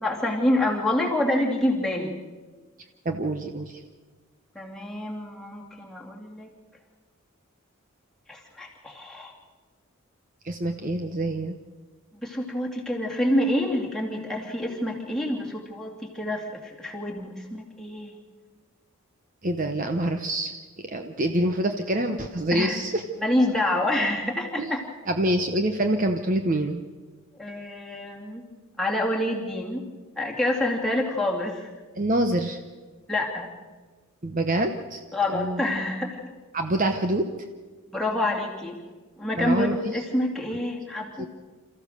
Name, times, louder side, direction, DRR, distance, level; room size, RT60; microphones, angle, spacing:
voice 1, 0.0-2.2 4.5-6.5 8.3-9.3 12.2-17.5 17.8-18.1 22.5-22.8 23.2-24.8 27.4-28.4 28.8-29.9 30.2-31.7 33.1-33.5 35.1-36.3 37.9-38.8 39.2-41.3, left 1 dB, ahead, -3 dB, 2.7 m, -27 dB
voice 2, 3.0-3.8 10.4-11.6 19.4-23.0 24.6-24.7 25.1-26.8 32.0-32.6 34.2-35.0 35.3-35.6 36.5-37.3 39.3-40.0 41.2-41.3, right 1 dB, 35° right, 6 dB, 0.9 m, -26 dB
28.0 x 14.5 x 6.6 m, 1.4 s
head